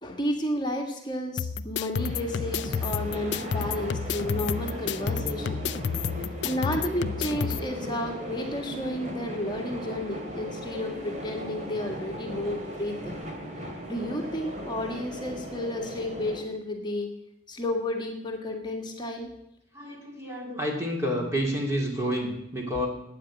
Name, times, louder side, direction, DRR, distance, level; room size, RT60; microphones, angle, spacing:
voice 1, 0.0-5.6 6.4-13.1 13.9-17.1 17.5-19.3, left 1 dB, 20° left, 2 dB, 1.7 m, -32 dB
sound 1, 1.4-7.6, left 6 dB, 65° left, 0.4 m, -30 dB
sound 2, 2.0-16.4, equal, 40° right, 2.4 m, -38 dB
voice 2, 19.7-22.9, equal, 15° right, -1 dB, 2.7 m, -29 dB
12.5 x 9.1 x 8.9 m, 0.80 s
head